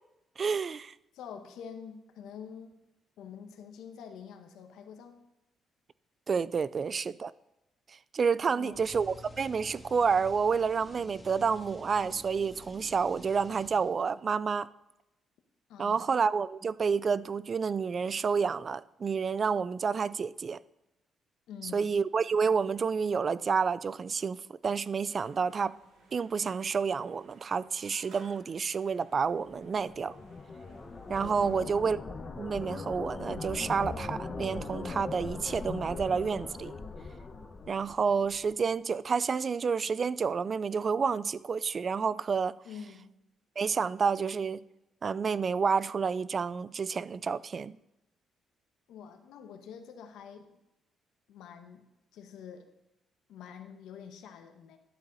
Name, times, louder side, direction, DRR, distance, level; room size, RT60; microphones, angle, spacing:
voice 1, 0.4-0.9 6.3-7.3 8.1-14.7 15.8-20.6 21.7-25.8 26.1-30.2 31.1-32.0 32.4-36.7 37.7-42.6 43.6-44.6 45.0-47.8, right 5 dB, 45° right, 0.3 m, -29 dB
voice 2, 1.1-2.8 3.2-5.2 8.5-9.0 15.7-16.2 21.5-22.0 31.4-31.9 42.6-43.1 48.9-50.5 51.3-51.9 52.1-52.7 53.3-54.8, left 7 dB, 85° left, 1.2 m, -46 dB
sound 1, 8.7-14.2, equal, 10° left, 1.7 m, -50 dB
sound 2, 25.1-31.8, right 3 dB, 75° right, 2.1 m, -60 dB
sound 3, 29.3-38.5, left 3 dB, 35° left, 1.2 m, -40 dB
12.0 x 8.1 x 4.1 m
cardioid pair, 90°, 0 cm